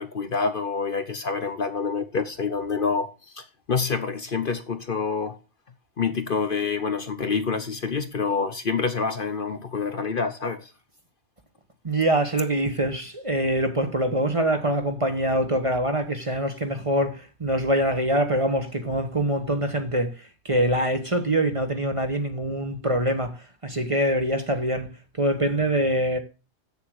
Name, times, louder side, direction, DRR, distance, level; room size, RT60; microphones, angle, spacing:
voice 1, 0.0-3.1 3.3-5.4 6.0-10.7, left 5 dB, 45° left, 1.0 m, -27 dB
voice 2, 11.8-24.9 25.2-26.2, right 1 dB, 25° right, 1.1 m, -24 dB
8.0 x 7.1 x 6.3 m
omnidirectional pair, 1.3 m